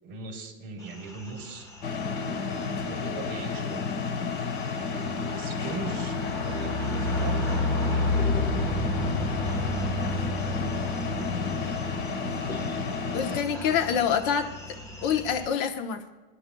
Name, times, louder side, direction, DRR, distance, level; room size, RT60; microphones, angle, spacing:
voice 1, 0.0-1.7 2.8-4.0 4.7-8.2, right 4 dB, 35° right, 1 dB, 3.0 m, -40 dB
sound 1, 0.9-15.5, left 2 dB, 10° left, 1.2 m, -32 dB
sound 2, 1.8-13.4, left 4 dB, 90° left, 1.9 m, -31 dB
voice 2, 13.1-14.5 15.0-16.0, left 7 dB, 60° left, 6 dB, 1.1 m, -26 dB
22.5 x 11.5 x 2.3 m, 1.3 s
cardioid pair, 155°, 33 cm